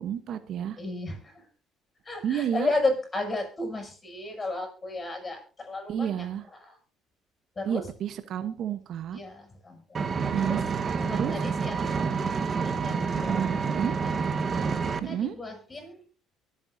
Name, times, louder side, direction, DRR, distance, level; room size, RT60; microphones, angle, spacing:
voice 1, 0.0-0.8 2.2-2.7 5.9-6.4 7.6-9.2 10.3-10.6 11.1-11.4 13.1-14.0 15.0-15.4, right 9 dB, 60° right, 11 dB, 1.0 m, -30 dB
voice 2, 0.8-1.5 2.0-6.3 6.6-6.7 7.6-7.8 9.1-10.1 10.5-10.6 11.0-13.4 13.9-14.1 14.8-16.0, left 2 dB, 30° left, 4 dB, 7.1 m, -34 dB
Engine, 9.9-15.0, right 5 dB, 40° right, 1.3 m, -28 dB
24.0 x 8.9 x 2.7 m, 0.39 s
hypercardioid pair, 65°, 0 cm